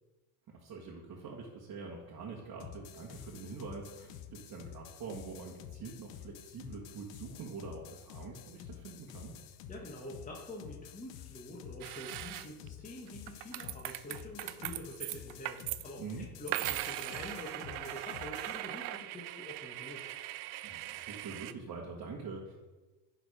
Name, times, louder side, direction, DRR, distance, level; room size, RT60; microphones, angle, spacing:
voice 1, 0.5-9.3 16.0-16.3 20.6-22.5, right 4 dB, 40° right, -2 dB, 1.6 m, -45 dB
sound 1, 2.6-18.6, left 10 dB, 60° left, 0.8 m, -50 dB
voice 2, 9.7-20.1, left 1 dB, 15° left, -3 dB, 1.5 m, -46 dB
sound 2, 11.8-12.7 13.1-15.8 16.5-21.5, right 16 dB, 55° right, 0.5 m, -40 dB
10.5 x 3.9 x 5.0 m, 1.2 s
supercardioid pair, 90°, 49 cm